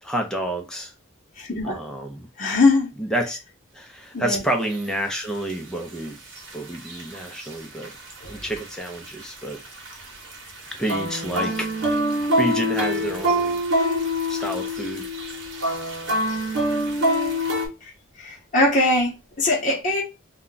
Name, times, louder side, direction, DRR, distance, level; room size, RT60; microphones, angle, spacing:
voice 1, 0.0-0.9 1.6-2.3 3.0-3.4 3.7-6.2 6.5-7.9 8.3-9.6 10.7-11.7 12.4-13.6 14.0-15.1, right 1 dB, 5° left, 0.5 m, -29 dB
voice 2, 1.4-1.8 2.4-2.9 4.1-4.4 8.2-8.4 17.8-20.0, left 2 dB, 40° left, 0.8 m, -22 dB
sound 1, 4.7-4.8 5.5-5.6 6.4-7.5 7.8-8.1 8.4-10.0 10.3-17.7, equal, 70° right, 1.0 m, -25 dB
2.3 x 2.3 x 3.8 m
head